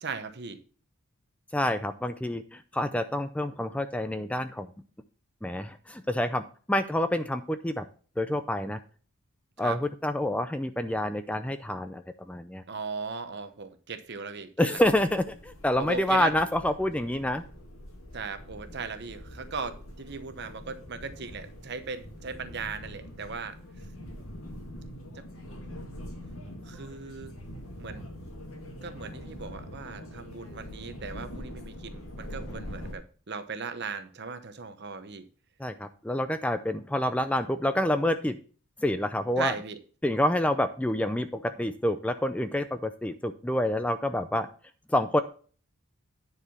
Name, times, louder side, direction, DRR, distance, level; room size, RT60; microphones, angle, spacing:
voice 1, 0.0-0.6 9.6-9.8 12.7-14.5 15.8-16.3 18.1-23.6 25.1-25.2 26.6-27.3 27.8-28.1 28.8-35.3 39.4-39.8, right 5 dB, 55° right, 0.9 m, -38 dB
voice 2, 1.5-4.7 5.4-7.9 8.2-8.8 9.6-12.6 14.6-17.4 35.6-38.4 38.8-39.5 40.0-44.5 44.9-45.2, left 1 dB, 5° left, 0.4 m, -28 dB
sound 1, 14.8-32.9, equal, 85° left, 2.1 m, -44 dB
9.8 x 4.7 x 5.7 m
head